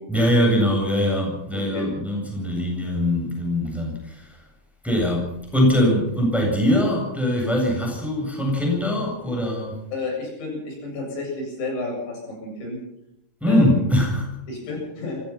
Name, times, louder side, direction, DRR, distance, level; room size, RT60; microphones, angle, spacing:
voice 1, 0.1-4.4 4.8-9.8 13.4-14.3, equal, ahead, 0 dB, 7.6 m, -22 dB
voice 2, 1.5-1.9 9.9-12.8 13.5-13.9 14.5-15.2, left 2 dB, 75° left, 0 dB, 10.5 m, -31 dB
25.5 x 17.5 x 5.9 m, 0.79 s
omnidirectional pair, 5.2 m